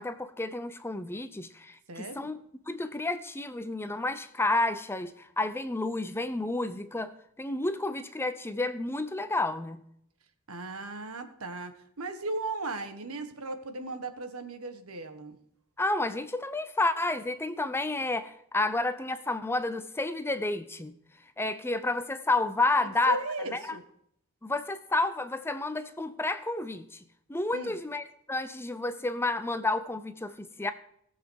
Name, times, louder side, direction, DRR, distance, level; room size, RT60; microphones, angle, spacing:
voice 1, 0.0-2.4 2.7-7.1 7.4-9.8 15.8-20.9 21.4-23.2 23.5-23.8 24.4-27.0 27.3-30.7, left 2 dB, 10° left, 0.6 m, -30 dB
voice 2, 1.9-2.3 10.5-15.4 22.8-23.8 27.5-27.8, right 2 dB, 75° right, 1.4 m, -37 dB
18.0 x 7.5 x 4.6 m
head